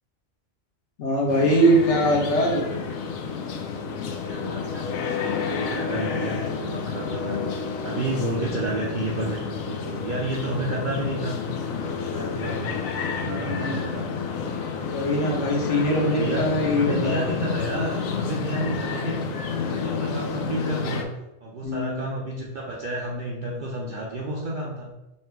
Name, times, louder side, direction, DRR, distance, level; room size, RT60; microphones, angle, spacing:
voice 1, 1.0-2.7 13.2-13.9 14.8-17.2 21.6-22.1, equal, 60° left, -2 dB, 1.2 m, -22 dB
sound 1, 1.3-21.0, left 5 dB, 80° left, 1.0 m, -30 dB
voice 2, 4.0-7.4 7.8-11.4 12.0-12.8 13.3-14.7 15.7-16.5 16.7-19.2 19.6-21.1 21.4-24.9, right 1 dB, 55° right, -3 dB, 0.6 m, -31 dB
3.2 x 2.8 x 4.5 m, 0.96 s
omnidirectional pair, 1.4 m